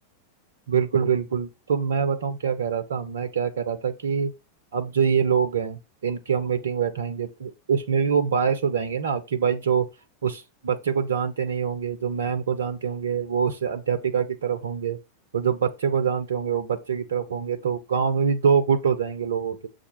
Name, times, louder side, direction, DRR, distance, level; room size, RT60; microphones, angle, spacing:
voice 1, 0.7-4.3 4.7-9.9 10.2-15.0 15.3-19.7, right 7 dB, 65° right, 0.5 m, -25 dB
6.7 x 2.3 x 3.0 m
figure-of-eight pair, 90°, 0 cm